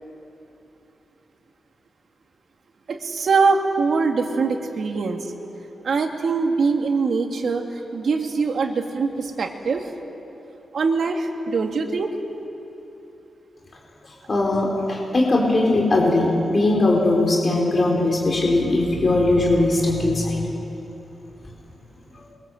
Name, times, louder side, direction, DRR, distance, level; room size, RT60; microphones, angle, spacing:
voice 1, 2.9-5.3 5.8-7.6 7.9-9.9 10.7-12.1, right 4 dB, 60° right, 3 dB, 2.3 m, -22 dB
voice 2, 14.3-20.4, left 2 dB, 35° left, -1 dB, 4.1 m, -19 dB
27.5 x 24.0 x 7.8 m, 3.0 s
wide cardioid pair, 140°, 0 cm